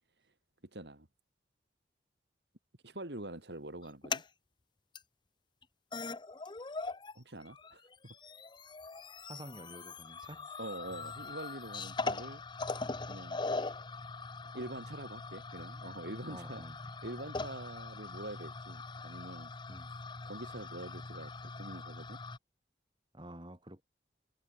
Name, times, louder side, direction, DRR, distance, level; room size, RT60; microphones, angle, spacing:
voice 1, 0.7-1.1 2.8-4.2 7.1-8.1 10.6-12.4 13.1-13.5 14.4-16.6 17.0-19.5 20.2-22.2, right 1 dB, 70° right, 3.3 m, -45 dB
sound 1, 3.8-4.3 4.9-5.0 5.6-5.7 5.9-7.1 7.4-22.4, left 3 dB, 25° left, 0.8 m, -41 dB
voice 2, 9.3-10.5 16.3-16.8 19.7-19.9 23.1-23.8, right 1 dB, 25° right, 5.6 m, -49 dB
head